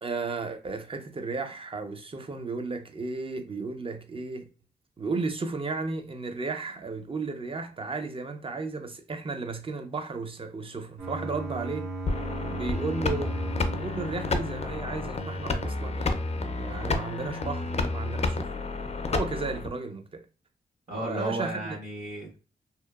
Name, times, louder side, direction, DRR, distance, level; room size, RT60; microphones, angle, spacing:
voice 1, 0.0-4.5 5.0-11.9 12.4-13.4 13.8-18.5 19.1-20.3 20.9-21.8, right 3 dB, 30° right, 0.5 m, -34 dB
sound 1, 11.0-17.0, right 1 dB, 75° right, 1.3 m, -38 dB
sound 2, 12.1-19.7, left 3 dB, 40° left, 0.4 m, -30 dB
voice 2, 20.9-22.4, right 1 dB, 55° right, 1.1 m, -33 dB
2.8 x 2.0 x 2.3 m
cardioid pair, 65°, 18 cm